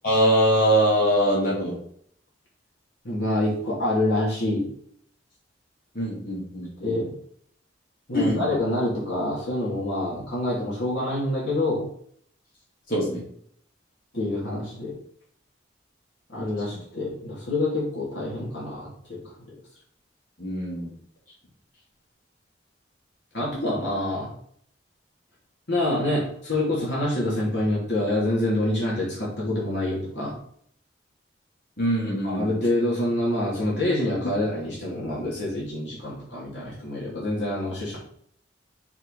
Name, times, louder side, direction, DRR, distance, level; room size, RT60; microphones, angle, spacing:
voice 1, 0.0-1.8 5.9-6.9 8.1-8.5 12.9-13.2 20.4-20.9 31.8-32.5, equal, 50° left, -6 dB, 3.0 m, -23 dB
voice 2, 3.0-4.7 6.8-7.1 8.1-11.9 14.1-14.9 16.3-19.5 23.3-24.3 25.7-30.4 32.2-38.0, left 1 dB, 75° left, -6 dB, 2.8 m, -26 dB
5.5 x 4.9 x 5.0 m, 0.63 s
head